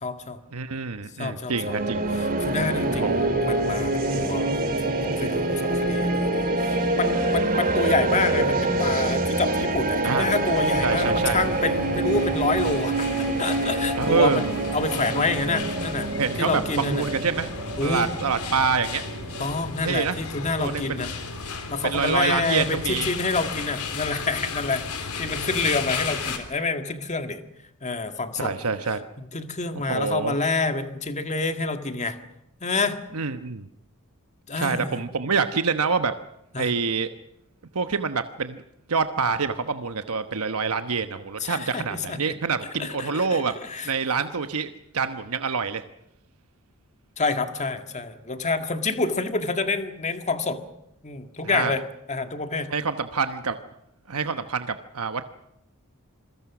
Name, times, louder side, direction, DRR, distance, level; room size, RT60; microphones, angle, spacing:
voice 1, 0.0-0.4 1.2-1.8 2.1-3.1 3.4-4.5 4.8-16.1 16.4-17.0 17.8-18.1 19.4-21.1 21.7-27.4 27.8-28.5 29.3-32.2 32.6-33.0 34.5-35.0 36.5-36.7 41.4-42.3 42.8-43.9 47.2-50.6 51.0-52.7, left 3 dB, 30° left, 7 dB, 1.9 m, -28 dB
voice 2, 0.5-2.0 2.9-3.2 10.0-10.3 10.8-11.4 14.0-14.4 16.1-17.5 17.8-19.0 19.8-20.2 20.6-21.1 21.8-23.1 25.3-25.5 28.4-29.0 29.9-30.4 33.1-33.7 34.6-36.1 36.6-37.1 37.7-38.6 38.9-43.5 43.8-45.8 51.4-51.7 52.7-53.6 54.1-55.2, right 5 dB, 75° right, 9 dB, 1.1 m, -26 dB
sound 1, 1.5-19.7, right 2 dB, 40° right, 2.5 m, -26 dB
sound 2, 10.5-26.4, left 4 dB, 85° left, 3.6 m, -34 dB
27.5 x 22.0 x 6.1 m, 0.81 s
head